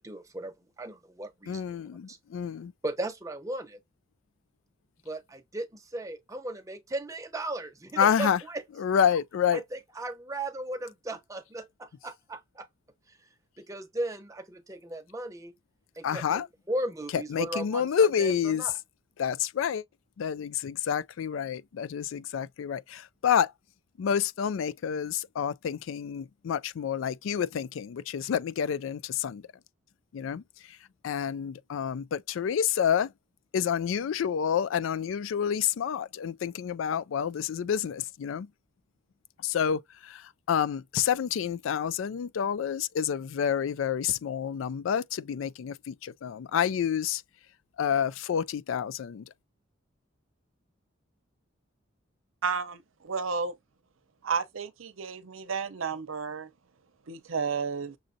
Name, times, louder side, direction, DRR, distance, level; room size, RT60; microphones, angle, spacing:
voice 1, 0.0-1.6 2.1-2.2 2.8-3.8 5.0-8.6 9.5-12.7 13.6-15.5 16.0-18.7, right 1 dB, 15° right, 0.8 m, -36 dB
voice 2, 1.5-2.7 8.0-8.4 8.8-9.6 16.0-16.5 17.1-18.7 19.2-19.8 20.2-23.5 24.0-29.4 30.1-30.8 31.0-33.1 33.5-38.5 39.4-47.2 47.8-49.3, left 8 dB, 75° left, 0.3 m, -28 dB
voice 3, 52.4-53.5 54.2-56.5 57.1-57.9, right 5 dB, 85° right, 0.7 m, -32 dB
6.2 x 2.5 x 2.6 m
head